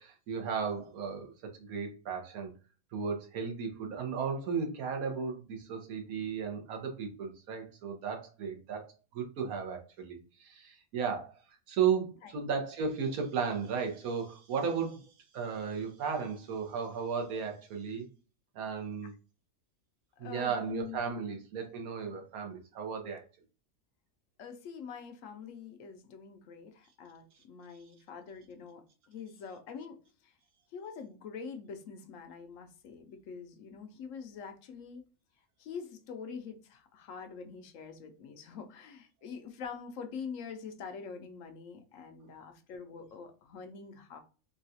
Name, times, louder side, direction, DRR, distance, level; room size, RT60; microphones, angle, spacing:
voice 1, 0.0-2.5 2.9-8.8 9.1-11.3 11.7-15.1 15.3-18.1 18.5-19.1 20.2-23.2, right 6 dB, 80° right, 3 dB, 1.3 m, -35 dB
voice 2, 20.2-21.0 24.4-30.3 30.7-35.0 35.6-44.2, left 6 dB, 70° left, 7 dB, 0.9 m, -45 dB
3.9 x 2.3 x 2.6 m, 0.36 s
omnidirectional pair, 1.5 m